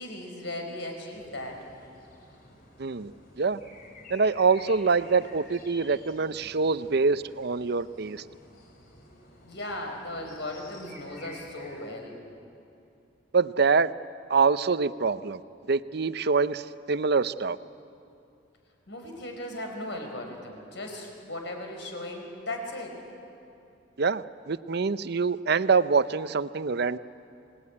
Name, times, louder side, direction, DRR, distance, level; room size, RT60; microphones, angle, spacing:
voice 1, 0.0-1.6 6.4-6.5 9.4-12.2 18.9-23.0, left 1 dB, 70° left, 3 dB, 5.0 m, -37 dB
sound 1, 1.1-11.9, left 1 dB, 50° left, 4.0 m, -51 dB
voice 2, 2.8-3.1 3.4-3.6 4.1-8.2 13.3-13.9 14.3-15.4 15.7-17.6 24.0-27.0, right 4 dB, 60° right, 14 dB, 0.6 m, -25 dB
26.5 x 19.5 x 9.8 m, 2.6 s
head